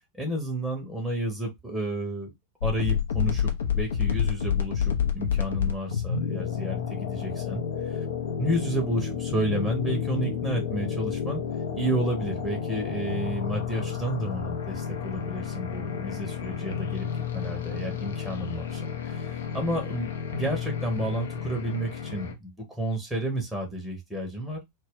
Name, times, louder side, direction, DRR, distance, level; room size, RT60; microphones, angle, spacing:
voice 1, 0.1-2.3 2.6-3.5 3.8-8.1 8.4-11.4 11.7-17.1 17.3-24.6, right 1 dB, 5° right, 0.7 m, -31 dB
sound 1, 2.6-22.3, left 8 dB, 65° left, 0.5 m, -30 dB
2.2 x 2.1 x 3.5 m
figure-of-eight pair, 90°, 0 cm